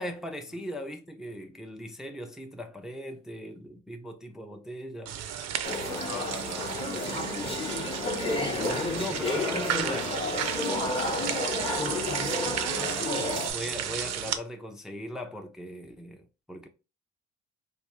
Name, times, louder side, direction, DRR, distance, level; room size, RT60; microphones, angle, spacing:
voice 1, 0.0-5.1 8.5-10.3 13.5-16.7, equal, ahead, 0.4 m, -38 dB
sound 1, 5.0-14.4, right 9 dB, 60° right, 0.5 m, -33 dB
sound 2, 5.6-13.5, left 2 dB, 20° left, 0.8 m, -31 dB
voice 2, 5.7-7.1 10.4-11.4 11.9-12.6, left 4 dB, 70° left, 0.9 m, -44 dB
3.3 x 2.4 x 3.0 m
cardioid pair, 90°, 30 cm